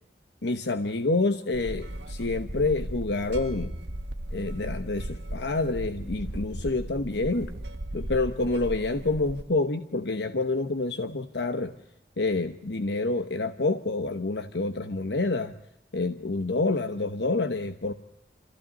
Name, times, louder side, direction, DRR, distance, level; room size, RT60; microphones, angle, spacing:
voice 1, 0.4-3.7 4.3-7.5 7.9-11.7 12.2-15.5 15.9-17.9, left 3 dB, 85° left, 9 dB, 1.0 m, -28 dB
sound 1, 1.5-9.4, right 1 dB, 85° right, 1.4 m, -36 dB
27.0 x 15.0 x 9.3 m, 0.78 s
head